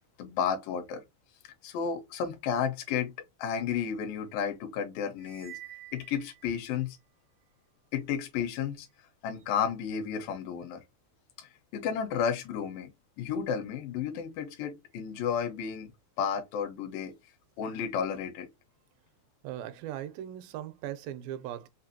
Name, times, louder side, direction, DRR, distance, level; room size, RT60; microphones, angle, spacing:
voice 1, 0.2-1.0 1.6-3.1 3.4-5.6 5.9-7.0 7.9-8.9 9.2-10.8 11.4-12.9 13.2-15.9 16.2-17.2 17.6-18.5, left 7 dB, 80° left, 2.5 m, -32 dB
sound 1, 5.2-7.0, right 14 dB, 65° right, 0.6 m, -49 dB
voice 2, 19.4-21.7, right 12 dB, 85° right, 2.3 m, -39 dB
5.6 x 2.6 x 2.7 m
omnidirectional pair, 4.2 m